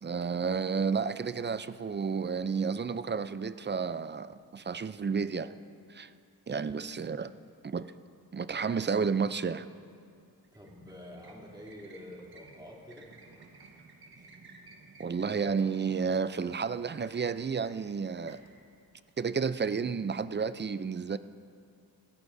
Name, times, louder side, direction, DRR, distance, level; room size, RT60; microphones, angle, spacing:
voice 1, 0.0-5.5 5.9-6.1 6.5-7.3 7.6-7.9 8.3-9.7 15.0-18.4 19.2-21.2, right 5 dB, 30° right, 13 dB, 0.4 m, -31 dB
sound 1, 10.4-19.7, right 3 dB, 70° right, 1.5 m, -56 dB
voice 2, 10.5-13.1 14.1-14.4, left 1 dB, 10° right, -4 dB, 2.9 m, -48 dB
21.5 x 16.0 x 2.6 m, 2.3 s
wide cardioid pair, 95°, 39 cm